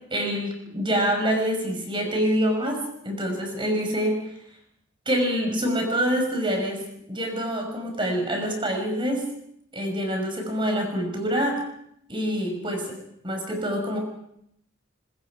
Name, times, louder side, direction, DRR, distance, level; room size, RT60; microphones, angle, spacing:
voice 1, 0.1-4.2 5.1-9.2 9.7-11.6 12.1-12.9 13.2-14.0, equal, 25° right, 3 dB, 5.6 m, -26 dB
25.0 x 21.0 x 4.9 m, 0.73 s
head